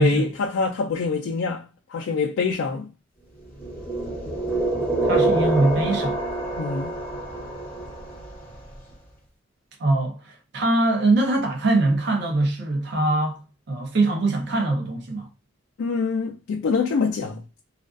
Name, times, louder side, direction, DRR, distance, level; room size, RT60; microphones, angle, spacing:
voice 1, 0.0-1.6 1.9-2.9 6.6-6.9 15.8-17.4, left 5 dB, 85° left, 0.3 m, -25 dB
sound 1, 3.6-8.5, right 2 dB, 10° left, 0.6 m, -26 dB
voice 2, 5.0-6.2 9.8-13.4 13.7-15.3, right 2 dB, 60° right, 0.5 m, -22 dB
2.4 x 2.3 x 2.3 m
head